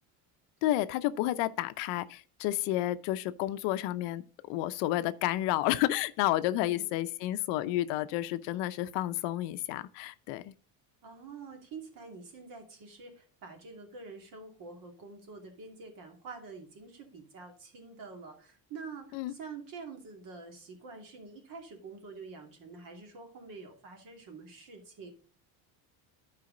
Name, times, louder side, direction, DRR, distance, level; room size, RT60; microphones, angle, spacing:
voice 1, 0.6-10.5 19.1-19.3, left 15 dB, 75° left, 0.7 m, -31 dB
voice 2, 6.4-6.9 11.0-25.1, right 4 dB, 50° right, 2.6 m, -47 dB
11.5 x 4.9 x 3.9 m
cardioid pair, 155°, 43 cm